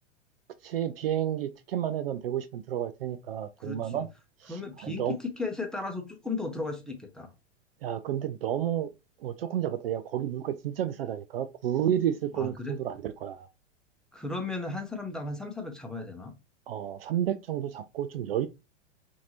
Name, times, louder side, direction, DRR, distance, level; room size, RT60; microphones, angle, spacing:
voice 1, 0.6-4.1 4.4-5.2 7.8-8.9 9.2-13.5 16.7-18.5, right 10 dB, 55° right, 0.5 m, -31 dB
voice 2, 3.6-4.0 4.5-7.3 12.3-12.8 14.1-16.3, left 3 dB, ahead, 0.9 m, -35 dB
5.6 x 2.7 x 2.8 m
figure-of-eight pair, 100°, 36 cm